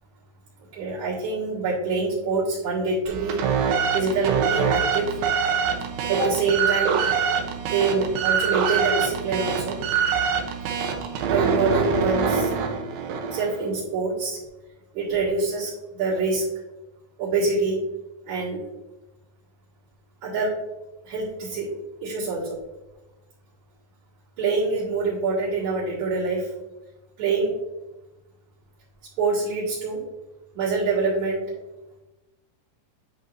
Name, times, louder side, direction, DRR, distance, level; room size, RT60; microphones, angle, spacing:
voice 1, 0.7-3.4 3.9-5.1 6.1-7.0 7.7-9.8 11.2-12.5 13.3-14.4 14.9-16.4 17.2-17.8 18.3-18.6 20.2-20.5 21.0-21.7 22.0-22.6 24.4-26.5 27.2-27.5 29.2-30.0 30.5-31.4, right 4 dB, 55° right, -12 dB, 3.2 m, -25 dB
sound 1, 3.1-13.6, right 6 dB, 80° right, 2.7 m, -25 dB
10.0 x 5.3 x 2.6 m, 1.0 s
omnidirectional pair, 4.2 m